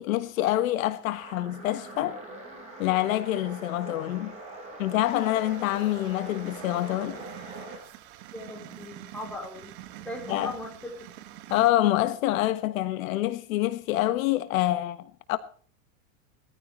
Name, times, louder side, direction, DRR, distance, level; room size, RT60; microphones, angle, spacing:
voice 1, 0.0-2.2 2.8-4.4 4.8-7.2 10.3-10.5 11.5-15.4, left 14 dB, 70° left, 1.4 m, -26 dB
sound 1, 1.1-7.9, right 2 dB, 15° right, 7.9 m, -43 dB
sound 2, 5.0-11.7, right 13 dB, 50° right, 1.9 m, -46 dB
voice 2, 8.3-9.7 10.0-11.1, left 1 dB, 5° left, 4.1 m, -39 dB
20.5 x 14.5 x 3.1 m
supercardioid pair, 175°, 42 cm